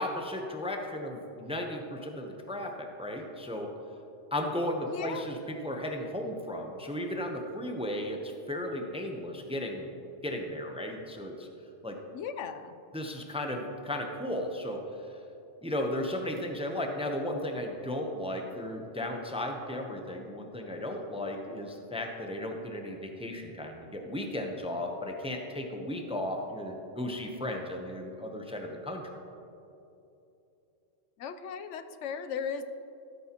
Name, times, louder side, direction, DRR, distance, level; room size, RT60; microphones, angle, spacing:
voice 1, 0.0-3.7 4.3-9.9 10.2-11.5 11.8-12.0 12.9-14.8 15.6-29.2, left 1 dB, 5° right, 3 dB, 0.6 m, -35 dB
voice 2, 4.9-5.3 12.1-12.8 31.2-32.6, left 6 dB, 90° left, 10 dB, 0.9 m, -37 dB
14.0 x 8.7 x 2.9 m, 2.8 s
omnidirectional pair, 1.2 m